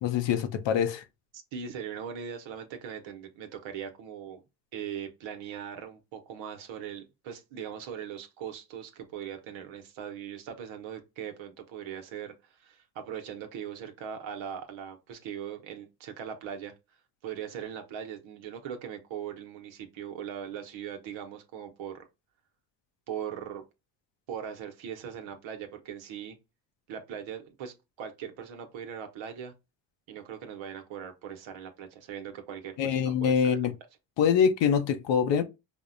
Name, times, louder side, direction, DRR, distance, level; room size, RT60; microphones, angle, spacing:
voice 1, 0.0-1.0 32.8-33.7 34.2-35.4, left 7 dB, 70° left, 0.7 m, -24 dB
voice 2, 1.3-4.4 4.7-16.7 17.2-22.1 23.1-23.6 24.3-26.4 26.9-29.5 30.1-33.6, right 8 dB, 80° right, 0.9 m, -40 dB
5.1 x 2.1 x 2.5 m
supercardioid pair, 75°, 45 cm